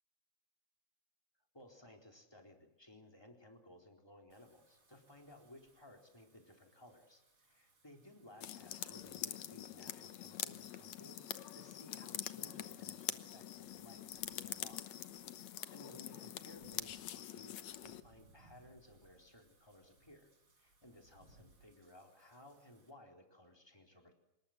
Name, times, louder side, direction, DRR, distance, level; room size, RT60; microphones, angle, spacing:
voice 1, 1.5-15.0 15.3-20.3 20.5-24.1, left 1 dB, 10° left, 3 dB, 3.8 m, -59 dB
Wind / Rain, 4.3-22.9, right 2 dB, 45° right, 5.6 m, -70 dB
sound 1, 8.4-18.0, left 12 dB, 70° left, 2.2 m, -45 dB
25.5 x 21.0 x 7.9 m, 0.90 s
omnidirectional pair, 3.4 m